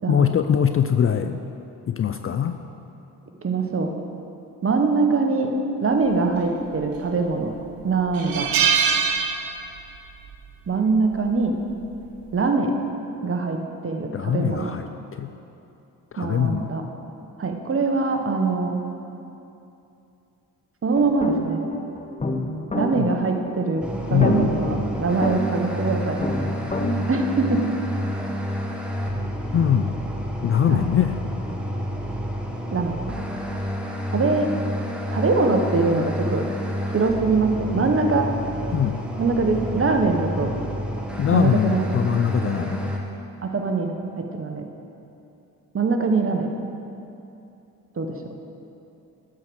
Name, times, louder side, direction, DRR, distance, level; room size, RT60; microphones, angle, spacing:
voice 1, 0.1-1.4 1.9-2.5 14.1-14.8 15.2-15.3 16.1-16.7 22.9-23.1 24.1-24.5 29.5-30.0 30.4-31.1 38.7-39.0 41.2-42.9, left 9 dB, 35° left, 8 dB, 0.4 m, -22 dB
voice 2, 3.4-3.9 4.6-5.5 5.8-7.5 7.8-8.5 10.7-11.5 12.3-12.7 13.2-14.7 16.2-16.8 17.4-18.7 20.8-21.6 22.7-23.8 24.1-26.2 27.1-27.7 30.7-30.8 32.7-32.9 34.1-34.5 35.1-36.4 36.9-38.3 39.2-40.5 41.3-41.8 43.4-44.6 45.7-46.5 48.0-48.1, right 4 dB, 35° right, 4 dB, 1.1 m, -23 dB
sound 1, 6.7-7.3 7.6-7.7 8.1-10.0 10.2-10.5 11.7-12.0, right 6 dB, 60° right, 0.8 m, -23 dB
sound 2, 20.9-27.0, left 1 dB, 20° left, 0.7 m, -29 dB
sound 3, 23.8-43.0, equal, 5° right, 1.2 m, -29 dB
10.0 x 4.8 x 6.1 m, 2.8 s
supercardioid pair, 60°, 39 cm